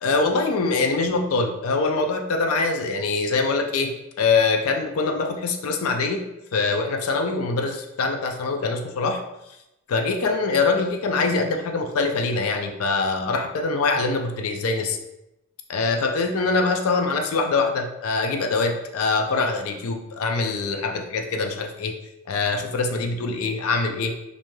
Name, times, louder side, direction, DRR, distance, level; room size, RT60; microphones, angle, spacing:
voice 1, 0.0-6.2 6.5-9.2 9.9-15.0 15.7-21.9 22.3-24.1, left 3 dB, 80° left, 4 dB, 0.4 m, -24 dB
2.6 x 2.2 x 3.0 m, 0.91 s
head